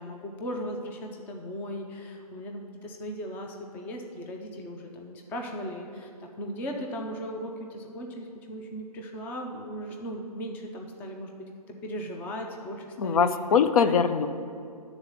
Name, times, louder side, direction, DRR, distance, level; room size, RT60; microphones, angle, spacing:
voice 1, 0.0-11.5 11.8-14.0, equal, 10° left, 2 dB, 0.4 m, -37 dB
voice 2, 13.0-14.3, left 6 dB, 65° left, 10 dB, 0.5 m, -22 dB
10.0 x 4.0 x 6.9 m, 2.4 s
hypercardioid pair, 145°, 20 cm